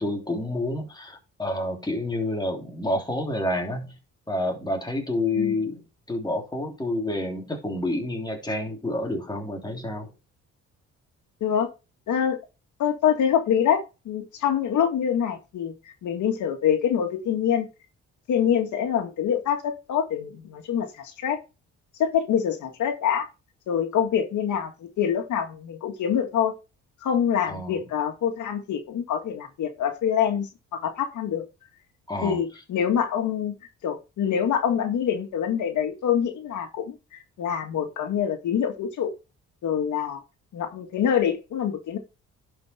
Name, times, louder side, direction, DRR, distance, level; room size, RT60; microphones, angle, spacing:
voice 1, 0.0-4.0 4.3-5.8 6.1-10.1 27.5-27.8 32.1-32.4, left 1 dB, 15° left, 3.2 m, -29 dB
voice 2, 12.1-12.4 12.8-15.7 16.0-17.7 18.3-21.4 22.0-23.3 23.7-26.5 27.0-31.4 32.2-33.6 33.8-37.0 37.4-39.1 39.6-40.2 40.5-42.0, left 8 dB, 75° left, 2.1 m, -25 dB
11.0 x 5.4 x 4.5 m
cardioid pair, 90°, 30 cm